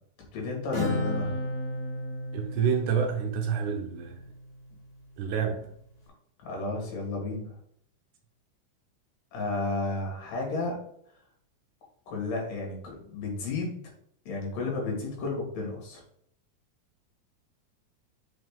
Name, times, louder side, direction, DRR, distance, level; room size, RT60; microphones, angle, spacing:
voice 1, 0.3-1.4 6.4-7.6 9.3-10.8 12.1-13.8 14.3-16.0, left 3 dB, 70° left, -1 dB, 3.6 m, -32 dB
Acoustic guitar, 0.7-4.4, left 1 dB, 50° left, 2.9 m, -33 dB
voice 2, 2.3-4.2 5.2-5.6, right 7 dB, 75° right, 3 dB, 2.1 m, -28 dB
6.6 x 4.6 x 3.6 m, 0.68 s
omnidirectional pair, 4.0 m